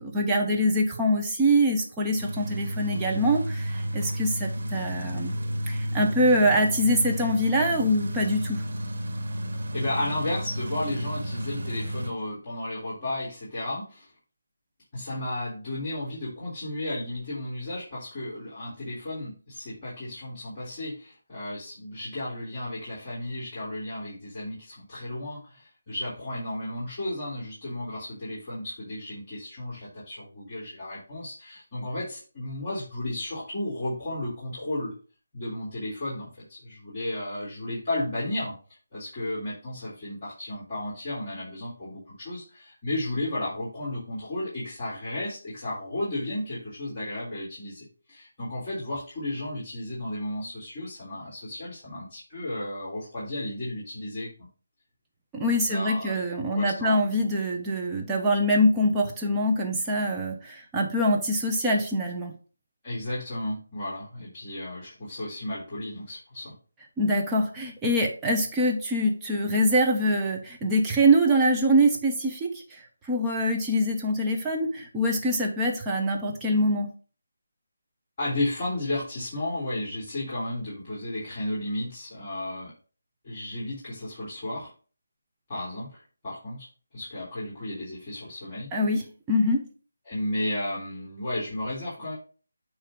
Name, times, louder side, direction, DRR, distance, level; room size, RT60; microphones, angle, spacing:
voice 1, 0.0-5.3 5.7-8.6 55.3-62.3 67.0-72.6 73.1-76.9 88.7-89.0 89.3-89.6, equal, 10° right, -1 dB, 1.1 m, -24 dB
sound 1, 2.2-12.1, equal, 60° right, 2.1 m, -32 dB
voice 2, 9.7-14.1 14.9-34.9 35.3-38.5 38.9-54.5 55.6-57.0 62.8-66.5 78.2-82.7 83.2-84.7 85.5-86.7 86.9-88.7 90.1-92.1, left 1 dB, 25° left, -6 dB, 3.6 m, -33 dB
9.0 x 3.1 x 5.3 m, 0.38 s
figure-of-eight pair, 165°, 0 cm